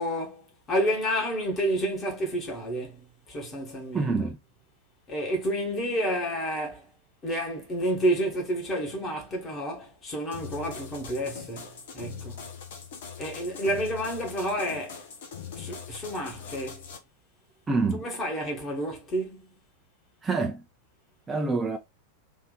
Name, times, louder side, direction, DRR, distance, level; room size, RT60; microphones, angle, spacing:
voice 1, 0.0-4.1 5.1-6.9 7.2-12.4 13.2-15.0 15.6-16.8 18.0-19.4, equal, 25° left, 1.5 m, -30 dB
voice 2, 3.9-4.4 17.7-18.0 20.2-20.6 21.3-21.8, right 3 dB, 15° right, 0.5 m, -26 dB
sound 1, 10.3-17.0, left 7 dB, 55° left, 0.8 m, -42 dB
3.6 x 2.6 x 3.7 m
figure-of-eight pair, 90°, 0 cm